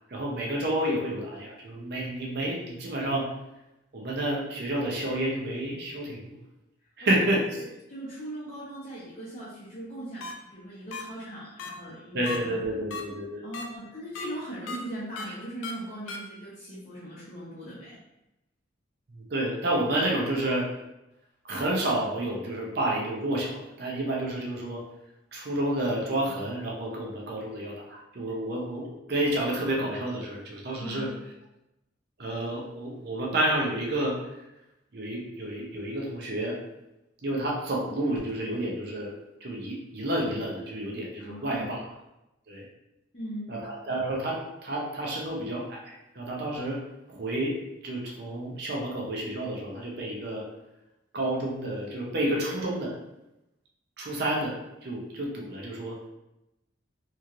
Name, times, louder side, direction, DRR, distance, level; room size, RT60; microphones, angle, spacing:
voice 1, 0.0-3.3 3.9-6.4 7.0-7.4 12.1-13.4 19.1-20.7 21.4-24.8 25.3-31.1 32.2-34.2 34.9-36.6 37.2-39.1 39.4-41.9 42.5-42.6 43.5-46.8 47.1-47.6 47.8-50.4 51.1-52.9 54.0-54.6 54.8-55.9, right 1 dB, 55° right, -2 dB, 0.6 m, -30 dB
voice 2, 7.6-12.5 13.4-18.0 30.8-31.1 41.2-41.7 43.1-43.5, right 1 dB, 35° left, -10 dB, 0.7 m, -39 dB
sound 1, 10.2-10.3 10.9-11.0 11.6-11.7 12.3-12.4 12.9-13.0 13.5-13.6 14.2-14.3 14.7-14.8 15.2-15.3 15.6-15.7 16.1-16.2, left 4 dB, 75° left, 0.4 m, -35 dB
3.0 x 2.7 x 2.4 m, 0.93 s
head